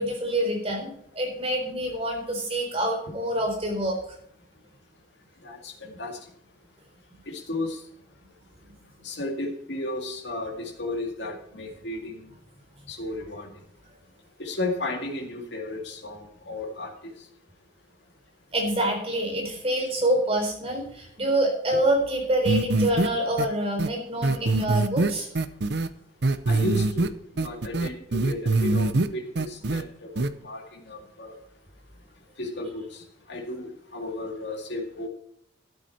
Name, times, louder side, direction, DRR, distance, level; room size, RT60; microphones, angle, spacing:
voice 1, 0.0-4.0 18.5-25.3, right 1 dB, 30° right, 1 dB, 3.9 m, -26 dB
voice 2, 5.4-6.2 7.3-7.8 9.0-12.3 12.9-13.5 14.4-17.1 26.5-27.1 27.3-31.4 32.4-35.1, left 2 dB, 60° left, 1 dB, 2.2 m, -34 dB
sound 1, 22.4-23.1 23.4-23.5 23.8-23.9 24.2-25.9 26.2-27.1 27.4-29.1 29.3-29.8 30.1-30.3, right 2 dB, 55° right, 0.7 m, -23 dB
12.5 x 9.2 x 4.4 m, 0.71 s
head